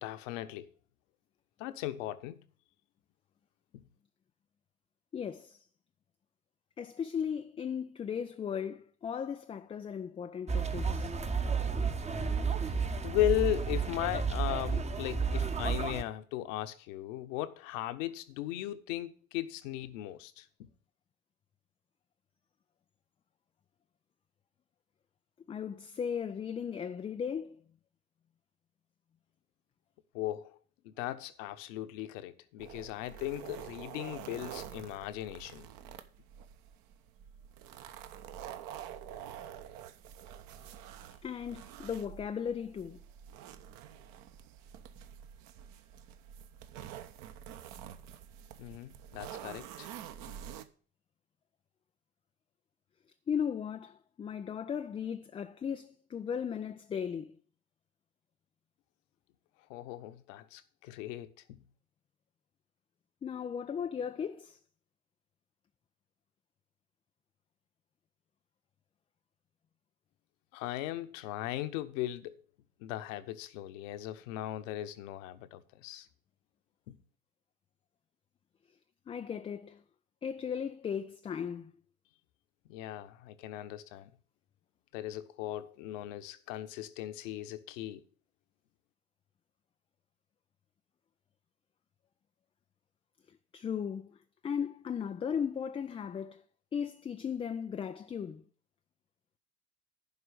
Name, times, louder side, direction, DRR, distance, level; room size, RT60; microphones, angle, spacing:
voice 1, 0.0-0.7 1.6-2.4 3.7-3.9 12.7-20.7 30.1-30.6 30.8-35.7 48.6-49.9 59.7-61.6 70.5-72.4 72.8-76.1 76.9-77.0 82.7-84.1 84.9-88.0, left 14 dB, 60° left, 1.2 m, -37 dB
voice 2, 5.1-5.6 6.8-11.1 25.5-27.6 41.2-43.0 53.3-57.3 63.2-64.6 79.1-79.8 80.2-81.7 93.5-94.1 94.4-96.4 96.7-98.4, left 7 dB, 15° left, 0.4 m, -36 dB
sound 1, 10.5-16.0, right 5 dB, 15° right, 1.0 m, -32 dB
sound 2, 32.6-50.6, right 10 dB, 50° right, 1.2 m, -47 dB
11.0 x 4.9 x 8.2 m
figure-of-eight pair, 75°, 44 cm